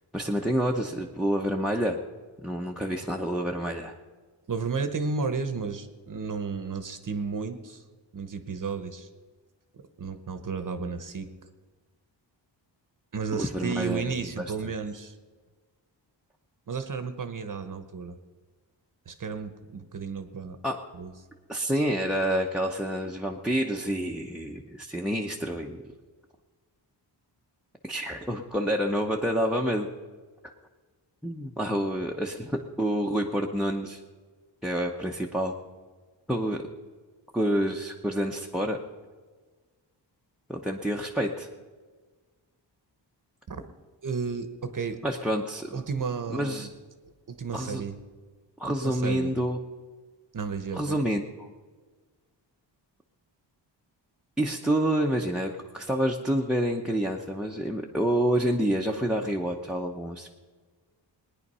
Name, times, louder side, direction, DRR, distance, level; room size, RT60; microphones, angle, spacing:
voice 1, 0.1-2.0 2.4-4.0 13.3-14.0 14.4-14.5 20.6-20.8 21.5-25.8 27.8-29.9 31.2-34.0 34.6-35.5 36.3-36.6 37.3-38.8 40.5-41.5 45.0-45.8 46.3-46.7 47.5-47.8 48.6-49.6 50.7-51.5 54.4-60.4, equal, ahead, 1 dB, 0.8 m, -28 dB
voice 2, 4.5-7.8 8.1-9.1 9.7-11.3 13.1-15.2 16.7-18.2 19.1-20.6 20.9-21.1 43.5-43.6 44.0-45.0 45.7-46.7 47.3-48.0 48.8-49.3 50.3-51.0, right 5 dB, 45° right, 9 dB, 1.0 m, -33 dB
20.0 x 9.9 x 5.5 m, 1.4 s
wide cardioid pair, 135°, 44 cm